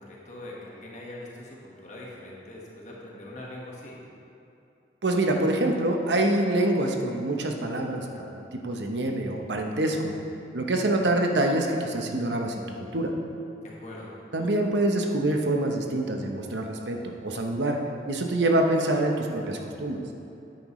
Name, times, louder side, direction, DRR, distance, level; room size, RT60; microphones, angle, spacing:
voice 1, 0.0-4.0 13.6-14.2, left 1 dB, 40° left, -4 dB, 1.5 m, -42 dB
voice 2, 5.0-10.1 10.5-13.1 14.3-17.8 18.0-20.0, right 1 dB, 80° right, 2 dB, 0.9 m, -26 dB
9.3 x 8.9 x 3.1 m, 2.8 s
head